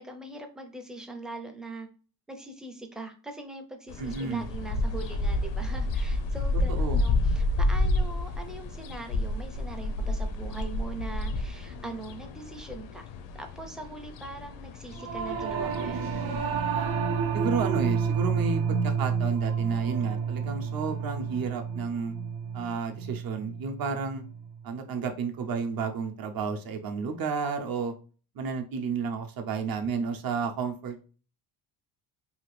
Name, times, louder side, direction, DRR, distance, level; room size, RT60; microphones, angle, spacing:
voice 1, 0.0-1.9 2.3-13.1 13.3-16.1, right 2 dB, ahead, 4 dB, 0.4 m, -41 dB
sound 1, 3.9-16.5, left 2 dB, 75° left, 0.6 m, -30 dB
voice 2, 4.0-4.4 6.7-7.0 17.3-22.1 22.5-24.2 24.6-27.9 28.3-31.0, right 5 dB, 50° right, 5 dB, 0.7 m, -32 dB
Singing / Musical instrument, 14.9-24.5, right 6 dB, 90° right, 0.8 m, -30 dB
2.8 x 2.4 x 3.1 m, 0.37 s
cardioid pair, 115°, 45 cm